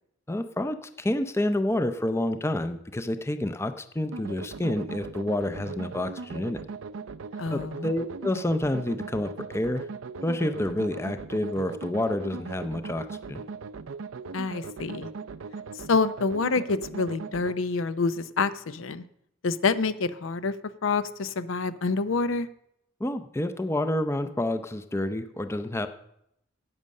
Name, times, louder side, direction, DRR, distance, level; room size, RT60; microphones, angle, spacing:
voice 1, 0.3-6.6 7.5-9.8 10.2-13.4 23.0-25.9, left 1 dB, 15° left, 9 dB, 0.5 m, -29 dB
sound 1, 4.1-17.5, right 4 dB, 80° right, 0.5 m, -39 dB
voice 2, 7.4-7.9 14.3-15.1 15.9-19.0 19.4-20.5 20.8-22.5, left 4 dB, 75° left, 14 dB, 0.6 m, -27 dB
11.0 x 8.4 x 6.4 m, 0.78 s
head